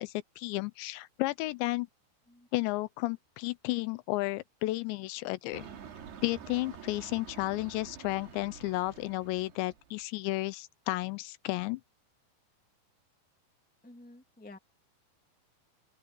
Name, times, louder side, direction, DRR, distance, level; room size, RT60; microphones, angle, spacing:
voice 1, 0.0-1.9 2.5-5.7 6.2-11.8, left 20 dB, 85° left, 3.0 m, -33 dB
sound 1, 5.5-10.0, right 7 dB, 65° right, 4.8 m, -48 dB
voice 2, 13.8-14.6, left 2 dB, 10° left, 0.4 m, -51 dB
open air
omnidirectional pair, 5.0 m